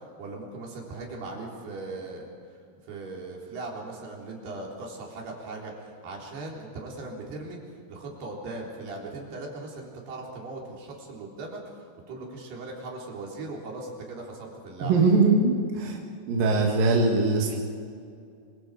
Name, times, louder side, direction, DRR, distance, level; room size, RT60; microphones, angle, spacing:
voice 1, 0.2-2.3 2.8-7.6 7.9-14.9, right 2 dB, 80° right, -2 dB, 5.9 m, -39 dB
voice 2, 14.8-16.0 16.3-17.6, right 3 dB, 65° right, -1 dB, 3.8 m, -21 dB
26.5 x 25.5 x 5.0 m, 2.3 s
omnidirectional pair, 4.5 m